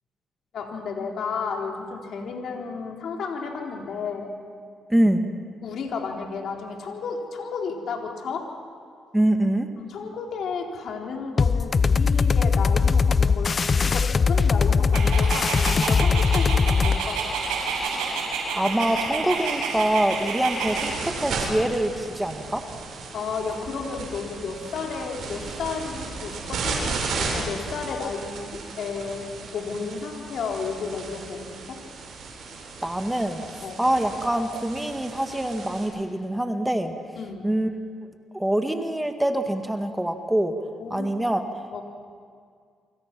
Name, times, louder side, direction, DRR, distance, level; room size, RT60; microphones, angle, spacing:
voice 1, 0.5-4.3 5.6-8.5 9.8-17.3 23.1-29.3 29.5-31.8 33.6-33.8 37.2-37.5 40.8-41.1 41.7-41.8, left 5 dB, 65° left, 1 dB, 3.8 m, -32 dB
voice 2, 4.9-5.3 9.1-9.7 18.5-22.6 32.8-33.4 33.8-37.0 37.4-37.7 38.0-38.1 38.3-40.6 40.9-41.4, right 1 dB, 5° right, 6 dB, 1.8 m, -24 dB
sound 1, 11.4-17.0, left 5 dB, 35° left, 0.7 m, -20 dB
Dog, 14.9-20.9, right 4 dB, 90° right, 7.4 m, -29 dB
sound 2, 19.3-35.8, right 4 dB, 65° right, 7.2 m, -35 dB
28.5 x 25.0 x 6.1 m, 2.1 s
cardioid pair, 90°, 0 cm